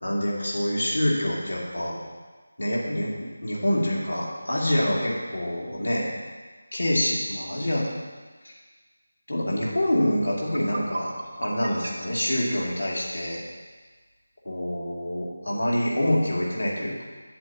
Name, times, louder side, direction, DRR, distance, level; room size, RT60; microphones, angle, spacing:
voice 1, 0.0-2.0 2.6-6.1 6.7-7.9 9.3-11.1 11.4-13.4 14.4-17.0, left 1 dB, 75° left, -5 dB, 2.4 m, -26 dB
sound 1, 10.0-10.1 10.4-13.5, right 2 dB, 45° right, 0.7 m, -37 dB
9.0 x 7.6 x 2.9 m, 1.4 s
figure-of-eight pair, 165°, 0 cm